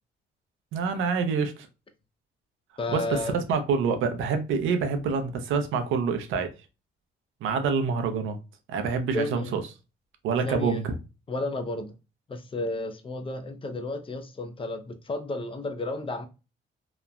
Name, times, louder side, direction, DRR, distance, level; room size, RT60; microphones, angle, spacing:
voice 1, 0.7-1.7 2.9-6.5 7.4-8.4 8.7-9.6 10.2-11.0, right 5 dB, 85° right, 0.6 m, -26 dB
voice 2, 2.8-3.3 9.1-9.5 10.5-10.9 11.3-11.9 12.3-16.3, left 2 dB, 25° left, 0.5 m, -32 dB
2.9 x 2.1 x 2.4 m
cardioid pair, 90°, 20 cm